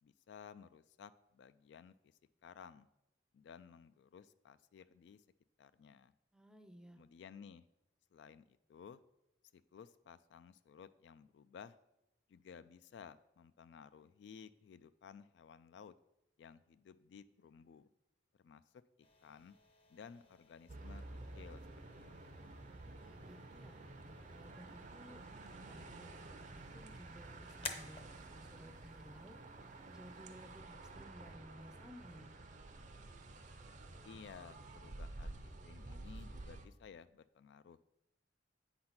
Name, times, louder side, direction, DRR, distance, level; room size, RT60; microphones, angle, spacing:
voice 1, 0.0-2.9 3.3-5.2 5.6-6.1 6.9-7.7 8.1-9.0 9.5-11.8 12.3-15.9 16.4-17.9 18.3-19.6 19.9-21.0 21.3-22.5 34.0-37.8, left 6 dB, 70° left, 14 dB, 0.3 m, -56 dB
voice 2, 6.3-7.0 23.0-23.8 24.3-25.2 25.5-29.4 29.8-32.3, equal, 5° right, 8 dB, 0.5 m, -57 dB
sound 1, 19.0-30.6, left 4 dB, 30° left, 0.7 m, -55 dB
sound 2, 20.7-36.7, right 2 dB, 45° right, 0.6 m, -51 dB
8.6 x 4.0 x 5.8 m, 0.90 s
head